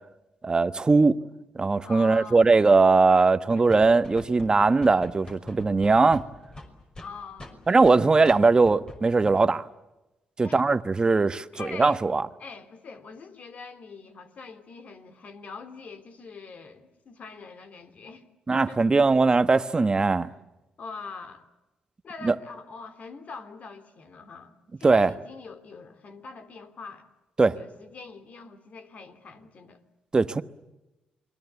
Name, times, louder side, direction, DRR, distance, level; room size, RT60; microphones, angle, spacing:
voice 1, 0.4-1.2 1.6-6.2 7.7-9.6 10.4-12.2 18.5-20.3 22.2-22.4 24.8-25.1 27.4-27.6 30.1-30.4, right 3 dB, 30° right, 1.2 m, -20 dB
voice 2, 1.8-2.4 3.1-3.2 3.6-3.9 7.0-8.0 10.4-10.6 11.5-12.1 12.4-18.8 19.8-20.3 20.8-21.5 22.0-27.1 27.5-29.8, left 4 dB, 55° left, 3.0 m, -44 dB
sound 1, 3.5-8.0 8.2-8.4 8.6-9.0 9.2-9.3, left 2 dB, 30° left, 5.5 m, -43 dB
28.5 x 21.5 x 8.3 m
cardioid pair, 80°, 3 cm